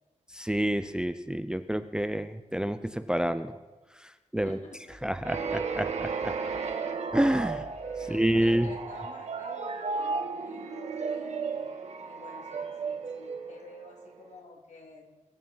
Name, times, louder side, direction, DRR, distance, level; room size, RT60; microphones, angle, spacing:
voice 1, 0.3-3.6 4.0-4.6 5.0-6.4 7.1-7.7 8.1-8.7, right 1 dB, 5° right, 11 dB, 0.5 m, -28 dB
voice 2, 4.3-5.1 6.6-7.0 8.0-11.7 12.1-15.1, left 3 dB, 70° left, 1 dB, 2.9 m, -50 dB
sound 1, 5.2-14.0, right 5 dB, 60° right, 1.6 m, -34 dB
22.0 x 7.5 x 5.6 m, 1.2 s
wide cardioid pair, 135°, 13 cm